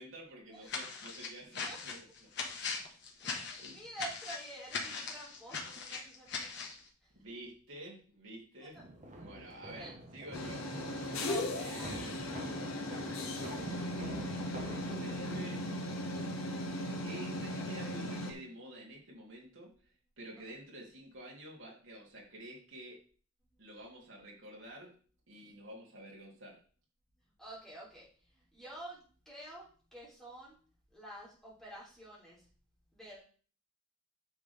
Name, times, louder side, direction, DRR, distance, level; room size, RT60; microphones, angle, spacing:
voice 1, 0.0-2.3 3.6-3.9 7.1-8.8 9.2-10.7 11.5-13.1 14.9-15.6 17.0-23.0 23.6-25.0 25.3-26.6, right 1 dB, 60° right, -3 dB, 3.3 m, -50 dB
sound 1, 0.7-6.8, left 5 dB, 50° left, 1.6 m, -40 dB
voice 2, 3.2-6.5 8.7-8.8 9.7-9.9 11.2-11.9 27.4-28.1 28.3-30.6 30.9-32.4 32.9-33.4, right 1 dB, ahead, -6 dB, 3.6 m, -48 dB
sound 2, 8.8-15.7, right 1 dB, 30° right, 1.5 m, -47 dB
sound 3, 10.3-18.3, left 1 dB, 70° left, 1.5 m, -38 dB
9.8 x 6.2 x 3.6 m, 0.41 s
head